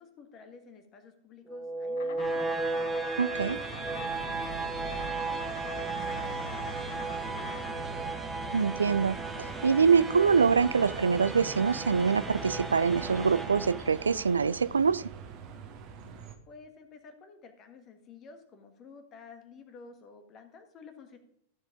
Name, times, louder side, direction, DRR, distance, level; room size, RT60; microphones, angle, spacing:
voice 1, 0.0-2.5 3.2-7.8 16.5-21.2, left 5 dB, 35° left, 7 dB, 1.5 m, -51 dB
sound 1, 1.5-14.5, right 3 dB, 10° right, 1.5 m, -35 dB
Insect, 2.0-12.0, left 8 dB, 60° left, 0.9 m, -48 dB
voice 2, 3.2-3.6 8.5-15.0, right 5 dB, 80° right, 18 dB, 0.3 m, -25 dB
Bus, 3.3-16.4, right 5 dB, 45° right, 1.5 m, -43 dB
14.0 x 4.8 x 5.1 m, 0.74 s
figure-of-eight pair, 90°, 0 cm